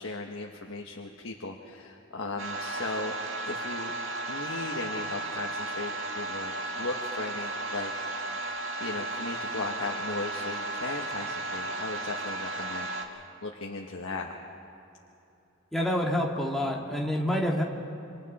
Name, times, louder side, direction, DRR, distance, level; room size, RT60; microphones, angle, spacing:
voice 1, 0.0-3.1 3.4-3.9 4.3-7.9 8.8-14.4, left 3 dB, 75° left, 0 dB, 1.3 m, -37 dB
sound 1, 2.4-13.0, right 2 dB, 70° right, 2.1 m, -34 dB
voice 2, 15.7-17.6, equal, ahead, -2 dB, 2.0 m, -27 dB
28.0 x 25.0 x 4.2 m, 2.9 s
head